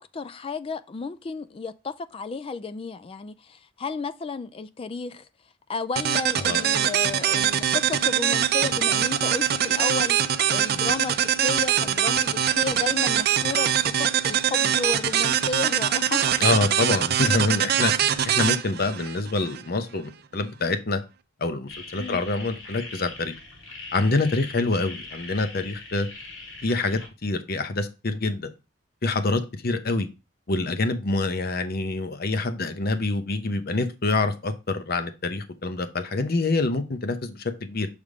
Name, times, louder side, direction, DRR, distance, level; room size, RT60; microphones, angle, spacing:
voice 1, 0.0-5.3 5.7-13.7 14.0-16.6 22.0-22.2, left 4 dB, 30° left, 0.3 m, -33 dB
sound 1, 6.0-19.6, right 9 dB, 50° right, 0.5 m, -23 dB
voice 2, 16.4-21.0 21.4-23.3 23.9-26.1 26.6-28.5 29.0-30.1 30.5-37.9, left 3 dB, 50° left, 0.8 m, -26 dB
sound 2, 21.7-27.1, left 3 dB, 85° left, 3.2 m, -41 dB
6.6 x 3.6 x 4.8 m
head